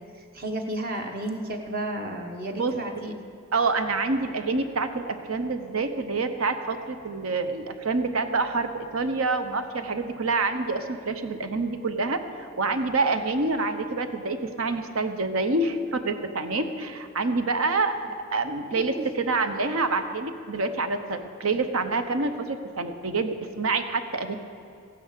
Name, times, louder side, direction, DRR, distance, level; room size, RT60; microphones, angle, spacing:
voice 1, 0.0-3.2 18.8-19.1, right 1 dB, 45° right, 3 dB, 1.1 m, -33 dB
voice 2, 3.5-18.0 18.3-24.4, right 3 dB, 80° right, 9 dB, 0.9 m, -27 dB
15.0 x 10.0 x 6.7 m, 2.6 s
head